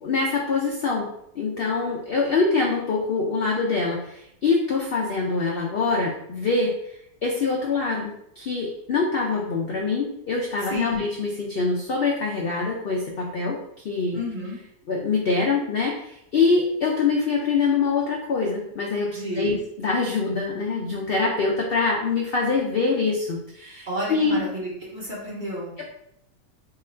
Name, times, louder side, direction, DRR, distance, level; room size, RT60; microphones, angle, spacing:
voice 1, 0.0-6.7 7.2-13.6 13.8-14.2 14.9-24.4 25.8-25.9, left 4 dB, 75° left, -1 dB, 0.5 m, -24 dB
voice 2, 10.7-11.1 14.1-14.6 19.1-19.6 23.9-25.7, equal, 40° right, -5 dB, 0.8 m, -31 dB
2.8 x 2.5 x 4.2 m, 0.76 s
omnidirectional pair, 1.7 m